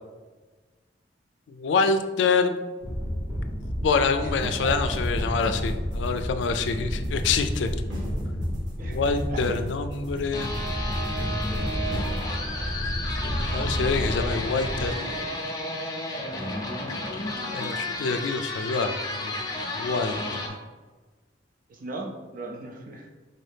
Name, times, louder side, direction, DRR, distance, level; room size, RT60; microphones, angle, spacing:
voice 1, 1.5-2.6 3.8-7.7 8.8-10.5 13.5-15.0 17.4-19.3 19.8-20.4, left 4 dB, 70° left, 8 dB, 0.3 m, -26 dB
sound 1, 2.8-14.9, equal, 20° right, 0.8 m, -31 dB
voice 2, 4.2-5.0 8.8-9.4 21.7-23.1, right 3 dB, 50° right, 2 dB, 0.5 m, -38 dB
sound 2, 4.4-12.3, left 1 dB, 85° right, 1.4 m, -40 dB
sound 3, 10.3-20.5, left 1 dB, 20° left, 0.6 m, -32 dB
4.0 x 2.7 x 3.4 m, 1.3 s
head